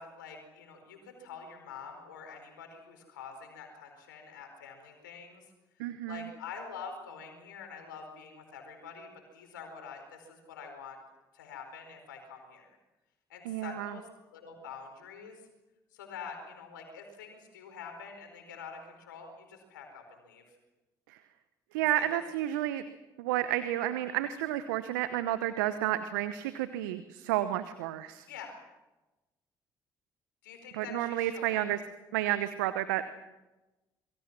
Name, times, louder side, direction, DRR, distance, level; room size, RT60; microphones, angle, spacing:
voice 1, 0.0-5.4 6.1-11.0 11.3-12.8 13.3-15.4 15.9-20.6 21.9-22.2 28.3-28.6 30.4-31.6, left 5 dB, 85° left, 4 dB, 4.7 m, -46 dB
voice 2, 5.8-6.3 13.4-14.0 21.1-21.2 21.7-22.8 23.2-28.3 30.7-31.8 32.1-33.0, right 13 dB, 80° right, 12 dB, 0.9 m, -31 dB
27.0 x 23.0 x 6.1 m, 1.1 s
hypercardioid pair, 50°, 10 cm